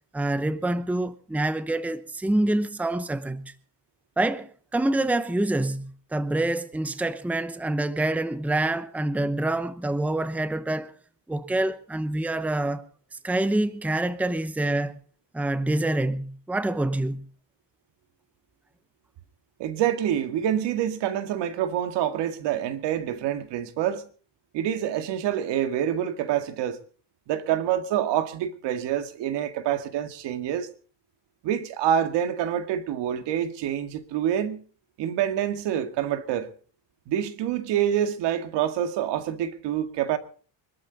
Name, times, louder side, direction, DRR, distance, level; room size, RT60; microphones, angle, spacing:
voice 1, 0.1-3.5 4.2-10.9 11.3-12.9 13.2-15.0 15.3-17.2, right 2 dB, 5° right, 0.9 m, -26 dB
voice 2, 19.6-24.0 24.5-26.8 27.3-30.7 31.4-34.6 35.0-36.5 37.1-40.2, right 10 dB, 75° right, 2.1 m, -26 dB
25.0 x 13.0 x 4.1 m
cardioid pair, 130°, 42 cm